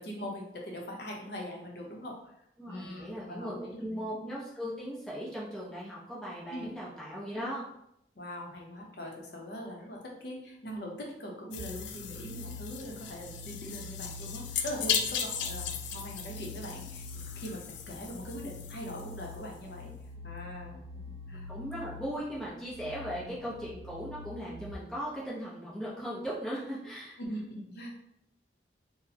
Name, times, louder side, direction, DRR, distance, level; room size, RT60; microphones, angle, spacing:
voice 1, 0.0-2.3 2.7-4.1 6.5-6.7 8.2-19.9 20.2-20.8 21.3-21.5 23.2-23.4 27.2-27.9, equal, 65° left, 0 dB, 0.8 m, -41 dB
voice 2, 2.6-7.7 12.3-12.5 21.5-27.2, equal, 5° left, -8 dB, 0.8 m, -38 dB
sound 1, 11.5-19.6, left 7 dB, 80° left, 0.4 m, -37 dB
sound 2, 11.6-24.8, left 3 dB, 55° right, 0.3 m, -46 dB
4.1 x 2.2 x 2.8 m, 0.77 s
head